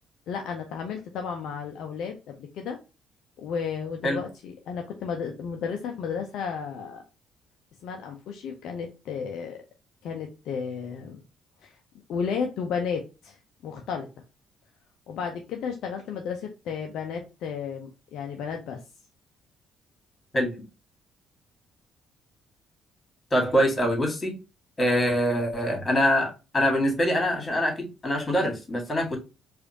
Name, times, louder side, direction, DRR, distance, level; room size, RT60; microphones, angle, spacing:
voice 1, 0.3-2.8 3.4-7.0 7.8-9.6 10.0-11.2 11.6-11.8 12.1-14.1 15.1-18.8, left 6 dB, 65° left, 0.5 m, -33 dB
voice 2, 23.3-24.3 24.8-29.2, equal, 30° left, 2.0 m, -24 dB
4.8 x 2.5 x 2.8 m
hypercardioid pair, 45°, 0 cm